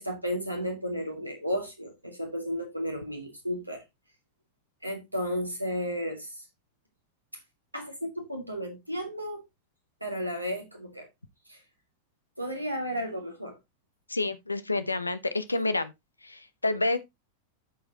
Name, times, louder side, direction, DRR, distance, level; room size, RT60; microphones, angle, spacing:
voice 1, 0.0-3.8 4.8-6.3 7.7-9.4 10.0-11.1 11.5-11.6 12.4-13.6, equal, 90° right, 2.4 m, -33 dB
voice 2, 14.1-15.9 16.2-17.0, left 2 dB, 80° left, 0.8 m, -28 dB
14.0 x 4.8 x 2.9 m
figure-of-eight pair, 90°, 0 cm